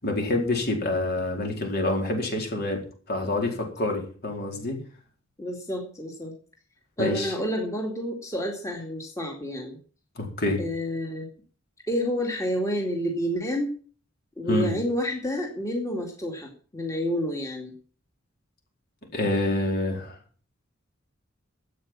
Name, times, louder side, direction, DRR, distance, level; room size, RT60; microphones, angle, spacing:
voice 1, 0.0-4.8 7.0-7.3 10.2-10.6 14.5-14.7 19.1-20.2, left 2 dB, 55° left, 2 dB, 4.4 m, -27 dB
voice 2, 5.4-6.3 7.0-9.8 10.6-11.3 11.9-13.8 14.4-17.7, equal, 15° left, 1 dB, 2.4 m, -29 dB
12.5 x 8.7 x 7.4 m, 0.41 s
head